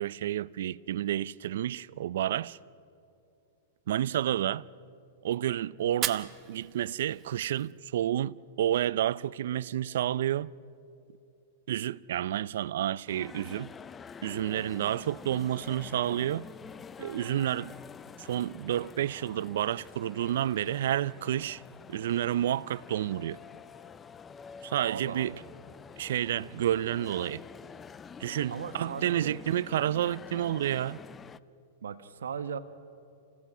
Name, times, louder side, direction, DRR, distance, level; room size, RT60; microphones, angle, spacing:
voice 1, 0.0-2.6 3.9-4.7 5.2-10.6 11.7-13.7 14.2-16.5 17.0-17.7 18.2-21.6 21.9-23.4 24.6-25.3 26.0-27.4 28.2-31.0, right 11 dB, 70° right, 0.4 m, -30 dB
Fire, 5.9-7.9, right 12 dB, 35° right, 1.0 m, -38 dB
sound 1, 13.1-31.4, left 6 dB, 20° left, 0.5 m, -47 dB
voice 2, 24.9-25.4 28.5-29.4 31.8-32.6, right 7 dB, 90° right, 1.2 m, -38 dB
28.5 x 16.5 x 6.1 m
hypercardioid pair, 125°, 0 cm